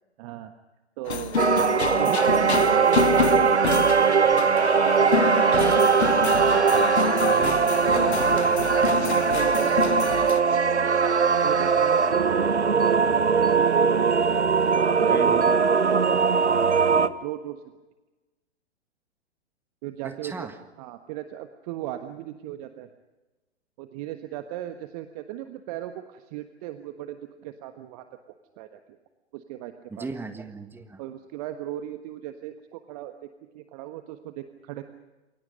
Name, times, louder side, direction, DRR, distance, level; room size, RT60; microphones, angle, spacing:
voice 1, 0.2-0.5 1.0-1.4 2.0-5.8 6.6-6.8 7.9-8.2 8.6-11.0 11.4-14.0 14.6-17.6 19.8-20.5 20.8-22.9 23.8-28.0 28.6-28.8 29.3-30.1 31.0-33.1 33.5-34.8, right 13 dB, 35° right, 8 dB, 1.4 m, -37 dB
sound 1, 1.1-10.4, left 6 dB, 70° left, 1.1 m, -28 dB
sound 2, 1.4-17.1, right 6 dB, 80° right, 1.1 m, -21 dB
voice 2, 7.2-8.7 15.1-15.5 20.0-20.6 29.9-31.0, right 3 dB, 5° right, 7 dB, 1.6 m, -37 dB
28.5 x 23.5 x 5.4 m, 1.1 s
figure-of-eight pair, 110°, 34 cm